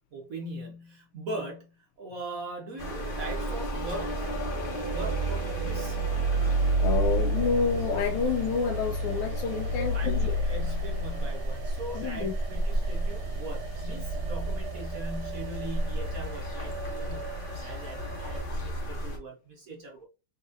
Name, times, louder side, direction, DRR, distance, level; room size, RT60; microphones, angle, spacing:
voice 1, 0.1-4.3 4.9-6.0 9.7-17.3 17.6-20.1, right 2 dB, 50° right, 1.1 m, -40 dB
sound 1, 2.8-19.2, right 1 dB, 35° left, 1.0 m, -30 dB
sound 2, 4.7-18.4, right 10 dB, 85° right, 1.5 m, -43 dB
voice 2, 6.8-10.3 11.9-12.3, left 5 dB, 80° left, 1.4 m, -29 dB
4.1 x 3.5 x 2.5 m
omnidirectional pair, 2.3 m